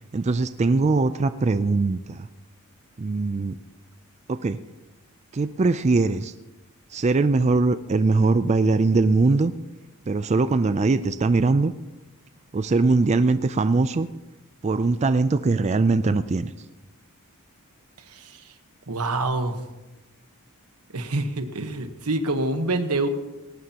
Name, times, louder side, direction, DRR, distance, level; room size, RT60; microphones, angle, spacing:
voice 1, 0.1-2.3 3.0-3.6 4.3-4.6 5.3-6.3 6.9-9.5 10.1-11.7 12.5-14.1 14.6-16.5, right 3 dB, 30° right, 12 dB, 0.4 m, -21 dB
voice 2, 18.1-18.5 18.9-19.6 20.9-23.1, right 2 dB, 90° right, 8 dB, 1.3 m, -26 dB
19.0 x 18.0 x 2.9 m, 1.1 s
head